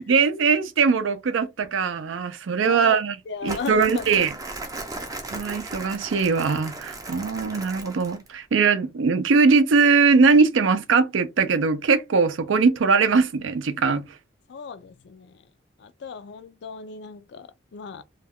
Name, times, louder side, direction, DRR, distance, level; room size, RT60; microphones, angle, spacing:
voice 1, 0.1-3.2 3.4-4.3 5.3-14.0, right 5 dB, 80° right, 0.4 m, -21 dB
voice 2, 2.6-3.0 3.3-4.1 14.5-15.4 15.8-18.0, left 6 dB, 60° left, 0.3 m, -36 dB
Crumpling crinkling, 3.4-8.3, right 2 dB, 20° right, 0.4 m, -37 dB
2.3 x 2.2 x 3.4 m
head